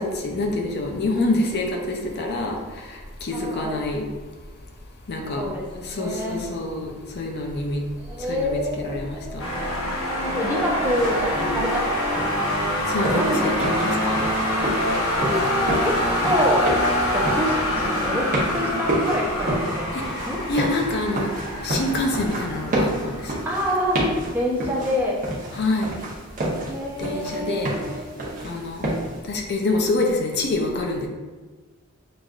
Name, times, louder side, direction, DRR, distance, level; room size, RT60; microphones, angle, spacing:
voice 1, 0.0-2.6 3.2-4.1 5.1-5.4 5.9-7.8 8.3-9.5 12.9-14.2 20.5-21.3 21.6-23.3 25.5-25.9 27.0-27.7 28.4-28.9 29.3-31.1, left 2 dB, 50° left, 1 dB, 0.5 m, -26 dB
voice 2, 3.3-3.8 5.4-6.4 8.0-9.7 10.2-12.2 13.1-13.5 14.1-14.2 15.2-16.0 16.2-16.7 17.1-19.9 20.3-20.4 23.4-25.2 26.5-28.2, equal, 10° right, -5 dB, 0.6 m, -27 dB
sound 1, 9.4-24.2, left 1 dB, 80° left, 0.9 m, -26 dB
sound 2, 10.8-29.2, right 1 dB, 40° right, 0.8 m, -30 dB
5.8 x 2.5 x 2.4 m, 1.3 s
head